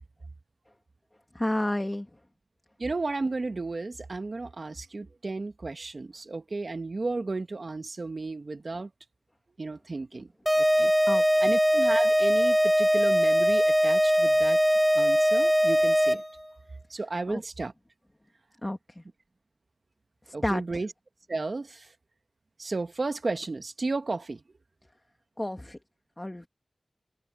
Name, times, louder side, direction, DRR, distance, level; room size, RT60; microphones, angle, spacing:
voice 1, 1.3-2.1 10.1-10.2 11.1-11.4 17.3-17.4 18.6-19.0 20.3-20.8 25.4-25.8 26.2-26.5, left 1 dB, 20° left, 2.3 m, -31 dB
voice 2, 2.8-8.9 9.6-10.3 10.6-10.9 11.4-14.6 14.9-16.2 16.9-17.7 20.3-20.9 21.3-21.9 22.6-24.4, right 3 dB, 60° right, 1.4 m, -33 dB
sound 1, 10.5-16.4, equal, 5° right, 0.5 m, -22 dB
wide cardioid pair, 60°, 0 cm